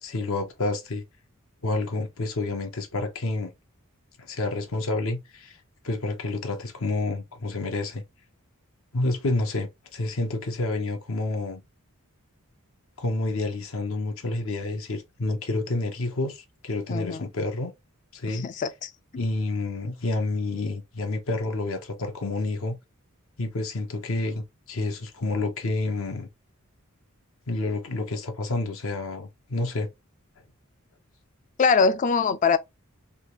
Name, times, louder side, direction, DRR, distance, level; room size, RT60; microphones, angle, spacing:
voice 1, 0.0-1.0 1.6-3.5 4.2-5.6 5.8-8.0 8.9-11.6 13.0-17.7 18.1-18.5 19.1-22.8 23.4-26.3 27.5-29.9, left 2 dB, 65° left, 0.7 m, -29 dB
voice 2, 16.9-17.3 18.3-19.2 31.6-32.6, left 5 dB, 35° left, 0.3 m, -23 dB
3.3 x 2.4 x 2.9 m
head